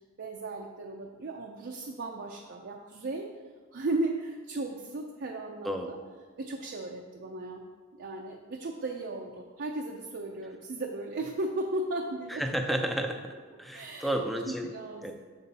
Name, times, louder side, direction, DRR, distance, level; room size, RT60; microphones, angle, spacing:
voice 1, 0.2-3.3 3.7-6.0 6.4-7.6 8.0-12.4 13.7-14.1 14.5-15.1, right 2 dB, 50° right, 1 dB, 0.5 m, -35 dB
voice 2, 5.6-6.0 12.3-14.8 15.0-15.1, right 1 dB, ahead, 5 dB, 0.5 m, -32 dB
6.7 x 5.4 x 4.1 m, 1.5 s
head